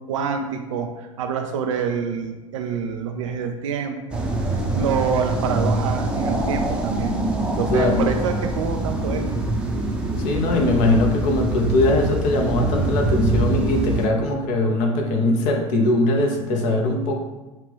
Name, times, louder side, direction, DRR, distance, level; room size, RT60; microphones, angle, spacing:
voice 1, 0.1-4.3 4.8-7.2 7.6-9.2, right 6 dB, 65° right, 5 dB, 0.4 m, -26 dB
sound 1, 4.1-14.1, right 2 dB, 5° right, 0.7 m, -24 dB
voice 2, 7.7-8.1 10.2-17.2, left 2 dB, 50° left, 2 dB, 0.8 m, -21 dB
5.5 x 2.4 x 3.4 m, 1.1 s
figure-of-eight pair, 70°, 18 cm